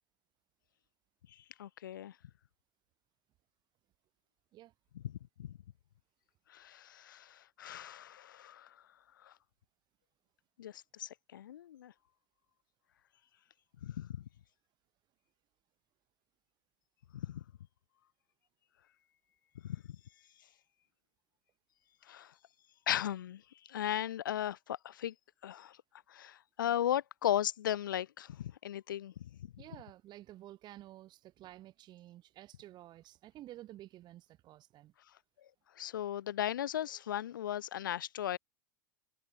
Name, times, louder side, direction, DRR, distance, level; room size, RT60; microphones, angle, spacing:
voice 1, 1.3-2.1 4.9-5.5 6.5-8.8 9.2-9.3 10.6-11.9 13.8-14.2 17.1-17.4 19.6-19.8 22.1-22.3 22.9-25.1 25.4-25.8 26.1-29.6 35.8-38.4, left 11 dB, 80° left, 0.6 m, -37 dB
voice 2, 29.6-34.9, right 14 dB, 45° right, 5.0 m, -52 dB
hypercardioid pair, 95°, 11 cm